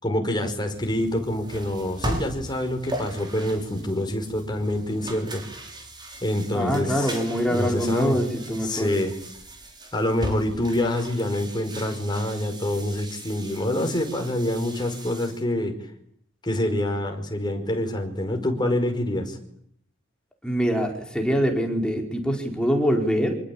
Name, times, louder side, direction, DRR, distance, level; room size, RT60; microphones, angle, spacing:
voice 1, 0.0-5.4 6.2-7.1 7.5-8.2 8.6-9.1 9.9-15.7 16.4-19.4, left 1 dB, 25° left, 4 dB, 5.2 m, -26 dB
sound 1, 0.7-15.4, right 1 dB, 25° right, 6.0 m, -38 dB
voice 2, 6.5-8.9 20.4-23.3, equal, 5° left, 2 dB, 4.7 m, -24 dB
26.5 x 25.0 x 8.7 m, 0.68 s
head